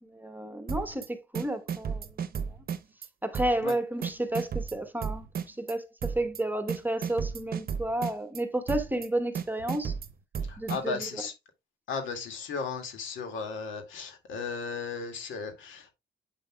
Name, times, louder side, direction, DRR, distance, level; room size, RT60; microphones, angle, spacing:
voice 1, 0.0-2.1 2.5-2.6 3.2-9.9 10.6-11.2, right 1 dB, 10° right, 1.1 m, -32 dB
sound 1, 0.7-1.1 1.3-3.1 3.3-3.7 4.0-5.7 6.0-6.4 6.7-8.4 8.7-9.1 9.3-11.1, right 6 dB, 50° right, 0.8 m, -33 dB
voice 2, 10.5-11.3 11.9-15.9, left 5 dB, 80° left, 2.1 m, -35 dB
8.2 x 5.6 x 2.3 m
cardioid pair, 90°, 20 cm